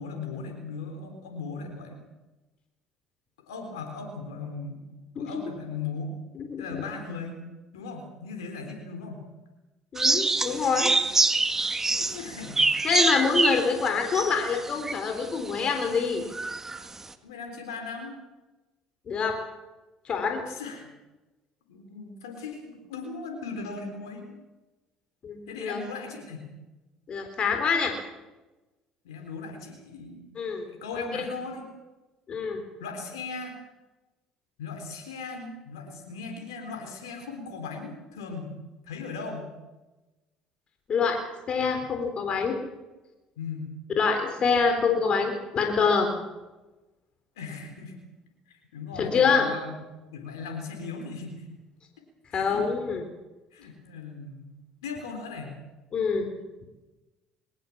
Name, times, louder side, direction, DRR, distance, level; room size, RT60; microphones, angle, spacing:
voice 1, 0.0-2.0 3.5-4.8 5.2-6.1 6.6-7.4 7.7-9.2 11.9-12.7 17.2-18.1 20.4-20.9 21.7-24.4 25.5-26.5 29.0-30.2 30.7-31.6 32.8-33.6 34.6-38.5 38.8-39.5 43.4-43.7 47.4-48.0 48.5-49.8 50.1-51.4 52.3-52.7 53.5-54.5 54.8-55.5, left 4 dB, 90° left, 3 dB, 3.8 m, -38 dB
voice 2, 6.4-6.8 9.9-10.9 12.8-16.2 19.1-19.4 20.1-20.4 25.2-25.8 27.1-27.9 30.4-30.7 32.3-32.6 40.9-41.2 41.5-42.5 44.0-46.1 49.0-49.4 52.3-53.0 55.9-56.3, left 5 dB, 45° left, 5 dB, 3.8 m, -25 dB
sound 1, 10.0-15.2 15.7-15.8 16.3-16.8, right 3 dB, 20° right, 1.8 m, -25 dB
21.5 x 18.5 x 7.3 m, 1.1 s
hypercardioid pair, 70°, 2 cm